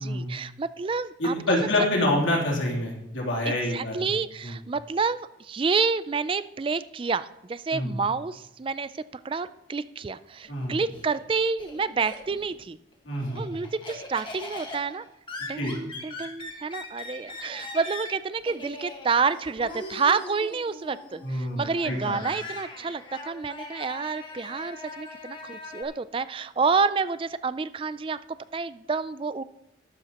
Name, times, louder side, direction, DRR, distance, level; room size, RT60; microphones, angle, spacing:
voice 1, 0.0-1.7 3.5-8.9 9.2-12.8 13.3-15.1 15.5-28.2 28.5-29.4, right 5 dB, 25° right, 14 dB, 0.3 m, -29 dB
voice 2, 1.2-4.1 4.4-4.6 7.7-8.0 10.5-10.8 13.0-13.5 15.6-15.7 21.2-22.2, left 1 dB, 85° left, -2 dB, 3.1 m, -27 dB
Laughter, 10.4-12.6 12.9-25.8, left 2 dB, 25° left, 1.6 m, -41 dB
13.5 x 12.0 x 3.0 m, 0.84 s
head